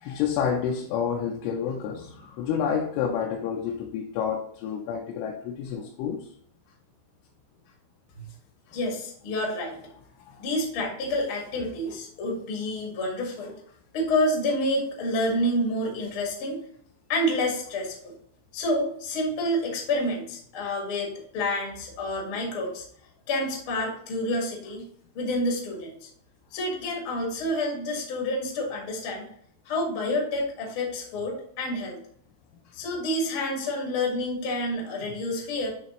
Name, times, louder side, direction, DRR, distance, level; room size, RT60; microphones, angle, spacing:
voice 1, 0.0-6.3 10.3-10.4, left 7 dB, 85° left, 3.0 m, -29 dB
voice 2, 8.7-9.8 10.4-13.5 13.9-16.6 17.1-18.1 18.5-22.8 23.3-24.9 25.1-26.1 26.5-29.3 29.7-32.0 32.7-35.7, left 1 dB, 60° left, 1.3 m, -28 dB
9.8 x 3.3 x 3.0 m
omnidirectional pair, 5.5 m